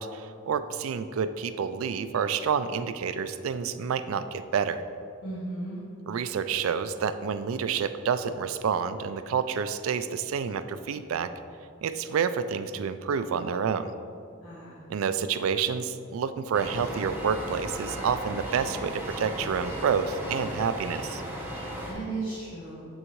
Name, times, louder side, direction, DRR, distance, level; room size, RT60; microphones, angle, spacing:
voice 1, 0.0-4.8 6.1-11.3 11.8-13.9 14.9-21.2, right 6 dB, 85° right, 12 dB, 0.4 m, -29 dB
voice 2, 5.2-5.8 14.4-14.8 21.7-22.9, right 2 dB, 80° left, -9 dB, 1.4 m, -36 dB
sound 1, 16.5-21.9, equal, 10° right, 0.9 m, -36 dB
7.1 x 6.3 x 3.0 m, 2.5 s
head